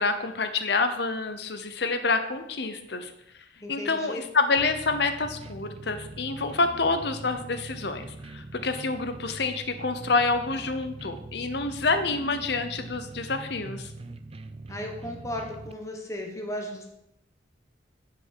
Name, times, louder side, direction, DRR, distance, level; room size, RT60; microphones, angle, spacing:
voice 1, 0.0-3.1 3.7-8.1 8.3-13.9, left 3 dB, 60° left, 9 dB, 0.8 m, -27 dB
voice 2, 3.6-4.2 14.7-16.9, left 1 dB, 15° left, 1 dB, 1.2 m, -35 dB
sound 1, 4.6-15.7, right 2 dB, 30° right, 0.4 m, -42 dB
9.9 x 5.3 x 4.7 m, 0.85 s
head